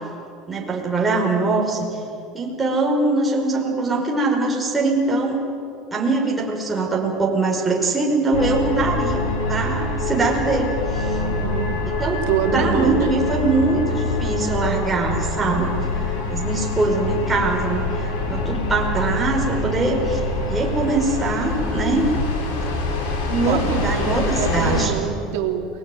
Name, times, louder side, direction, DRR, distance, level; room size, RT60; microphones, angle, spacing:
voice 1, 0.5-1.9 2.3-5.4 5.9-9.2 9.5-11.2 12.0-15.7 16.3-22.1 23.2-24.9, right 3 dB, 15° right, -2 dB, 5.3 m, -22 dB
sound 1, 8.3-24.9, left 2 dB, 75° left, 5.7 m, -25 dB
voice 2, 11.3-11.8 12.3-13.1 23.4-25.7, right 8 dB, 75° right, 4 dB, 3.4 m, -25 dB
29.5 x 21.5 x 9.3 m, 2.5 s
supercardioid pair, 135°, 0 cm